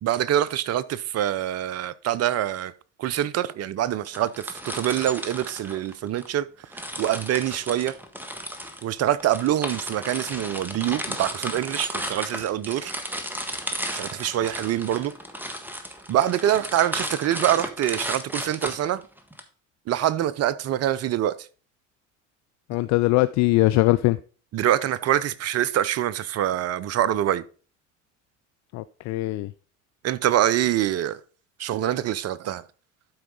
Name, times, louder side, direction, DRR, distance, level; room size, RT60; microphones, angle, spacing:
voice 1, 0.0-2.7 3.0-6.5 6.7-7.9 8.8-12.9 13.9-15.1 16.1-19.0 19.9-21.4 24.5-27.4 30.0-31.2 31.6-32.6, right 12 dB, 40° right, 0.7 m, -25 dB
sound 1, 4.0-6.3 6.7-19.4, equal, 5° right, 1.4 m, -34 dB
voice 2, 22.7-24.2 28.7-29.5, left 18 dB, 50° left, 0.5 m, -21 dB
12.0 x 4.7 x 3.9 m
hypercardioid pair, 65°, 37 cm